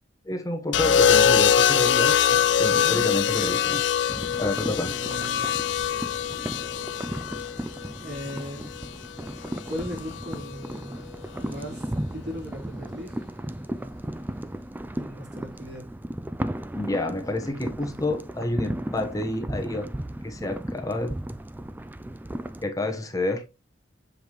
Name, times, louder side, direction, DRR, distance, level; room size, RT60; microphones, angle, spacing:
voice 1, 0.2-3.8 4.4-4.9 16.7-19.9 20.2-21.1 22.6-23.4, left 1 dB, 20° left, 1.0 m, -29 dB
sound 1, 0.7-8.9 10.1-10.5, left 8 dB, 75° left, 0.5 m, -23 dB
voice 2, 2.7-3.1 4.8-5.6 8.0-8.7 9.7-11.1 11.3-13.2 14.9-15.8, equal, 65° right, 3.8 m, -38 dB
sound 2, 4.1-22.6, right 1 dB, 10° right, 0.4 m, -35 dB
7.8 x 5.1 x 3.0 m
head